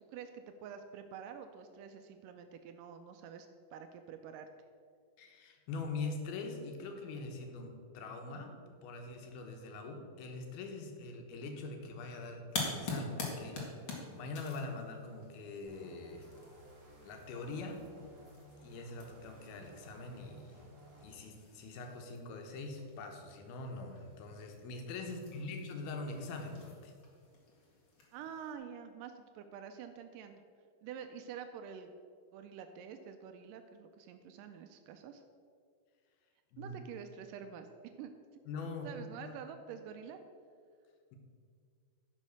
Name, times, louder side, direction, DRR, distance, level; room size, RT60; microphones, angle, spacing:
voice 1, 0.1-4.5 25.0-25.6 28.1-30.4 30.8-31.9 32.3-35.2 36.6-37.7 38.0-38.1 38.8-40.2, right 7 dB, 90° right, 7 dB, 1.9 m, -48 dB
voice 2, 5.2-13.6 14.2-16.6 17.0-17.8 18.6-20.6 21.0-26.9 36.5-36.8 38.5-38.9 39.2-39.4, left 3 dB, 80° left, 4 dB, 3.0 m, -43 dB
sound 1, 12.5-28.5, left 3 dB, 40° left, 2.1 m, -47 dB
sound 2, 15.6-21.1, right 1 dB, 70° right, 0.5 m, -57 dB
10.5 x 6.4 x 6.5 m, 2.2 s
omnidirectional pair, 4.4 m